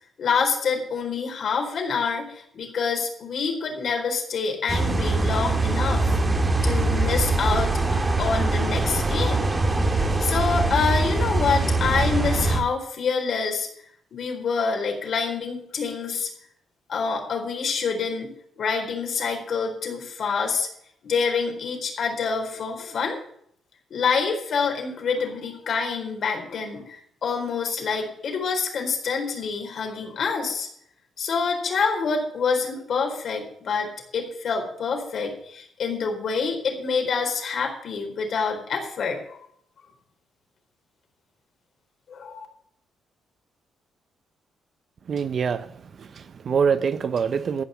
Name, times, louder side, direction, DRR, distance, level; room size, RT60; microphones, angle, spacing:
voice 1, 0.2-6.0 6.6-7.8 8.2-9.5 9.9-13.7 14.1-16.3 16.9-18.3 18.6-20.7 21.0-23.2 23.9-30.7 31.2-39.4 42.1-42.5, left 5 dB, 55° left, 4.1 m, -26 dB
sound 1, 4.7-12.6, right 2 dB, 20° right, 2.1 m, -23 dB
voice 2, 45.1-45.7 46.0-47.6, right 6 dB, 50° right, 0.8 m, -25 dB
14.5 x 5.7 x 9.8 m
cardioid pair, 110°, 0 cm